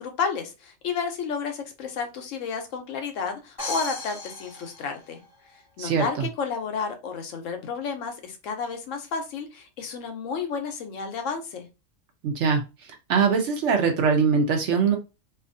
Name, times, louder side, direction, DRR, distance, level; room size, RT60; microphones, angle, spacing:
voice 1, 0.0-5.2 5.5-11.7, left 5 dB, 70° left, 5 dB, 0.9 m, -31 dB
sound 1, 3.6-5.5, left 3 dB, 15° left, 1.3 m, -36 dB
voice 2, 12.2-12.6 13.1-15.0, right 5 dB, 65° right, 5 dB, 0.8 m, -22 dB
2.6 x 2.4 x 2.5 m, 0.28 s
omnidirectional pair, 1.4 m